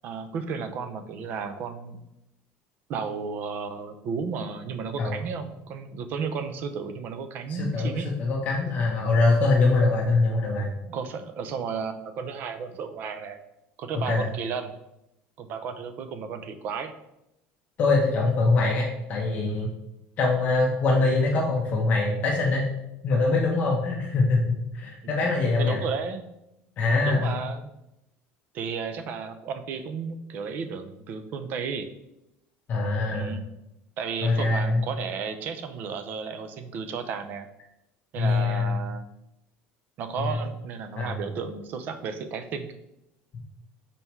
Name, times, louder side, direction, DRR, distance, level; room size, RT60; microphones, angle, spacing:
voice 1, 0.0-2.0 2.9-8.1 10.9-13.4 13.8-14.7 15.4-16.9 25.0-26.3 27.0-27.7 28.5-31.9 33.1-33.4 34.0-37.5 38.1-39.1 40.0-42.7, right 5 dB, 40° right, 9 dB, 0.6 m, -33 dB
voice 2, 7.5-7.9 8.2-10.7 14.1-14.3 17.8-19.7 20.2-22.6 23.0-25.8 26.8-27.3 32.7-33.3 34.2-34.9 38.2-38.8 40.2-40.4 41.0-41.2, left 3 dB, 35° left, -3 dB, 0.9 m, -23 dB
5.6 x 4.2 x 4.6 m, 0.86 s
cardioid pair, 170°, 5 cm